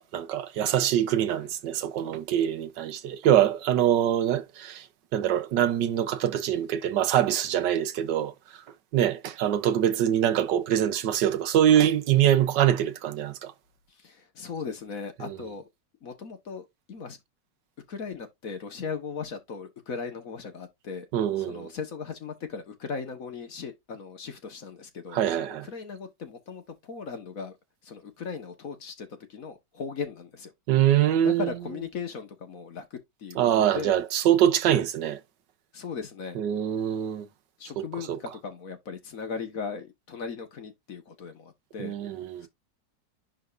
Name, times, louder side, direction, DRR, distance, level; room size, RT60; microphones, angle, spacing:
voice 1, 0.0-4.9 5.1-8.3 8.9-13.5 15.2-15.4 21.1-21.7 25.1-25.7 30.7-31.5 33.3-35.2 36.3-37.3 37.8-38.2 41.8-42.5, right 11 dB, 80° right, 1.5 m, -24 dB
voice 2, 14.0-15.6 16.0-17.2 17.9-21.0 21.4-27.5 27.8-30.5 31.2-32.8 33.2-34.0 35.7-36.4 37.6-41.9, left 5 dB, 55° left, 1.6 m, -37 dB
10.5 x 3.8 x 2.5 m
omnidirectional pair, 1.9 m